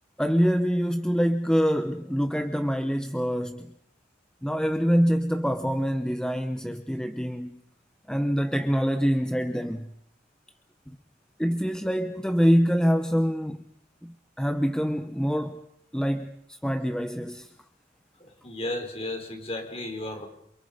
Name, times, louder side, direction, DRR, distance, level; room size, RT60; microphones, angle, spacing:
voice 1, 0.2-3.7 4.4-7.6 8.1-9.9 11.4-13.6 14.0-15.6 15.9-16.3 16.6-17.5, equal, 5° left, 0.9 m, -25 dB
voice 2, 18.4-20.3, left 1 dB, 30° left, 4.6 m, -33 dB
28.5 x 28.0 x 5.2 m
head